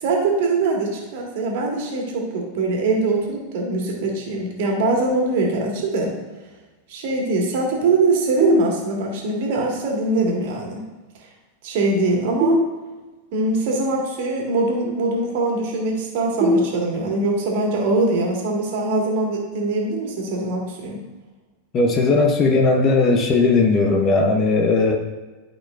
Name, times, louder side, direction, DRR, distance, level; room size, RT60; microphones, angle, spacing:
voice 1, 0.0-6.1 6.9-10.8 11.6-12.6 13.3-21.0, right 2 dB, 50° right, 0 dB, 1.8 m, -22 dB
sound 1, 8.4-9.4 12.4-13.4 16.4-17.4, equal, 35° right, 1.2 m, -23 dB
voice 2, 21.7-25.0, left 3 dB, 30° left, 4 dB, 0.9 m, -17 dB
12.0 x 5.4 x 2.5 m, 1.2 s
figure-of-eight pair, 90°, 0 cm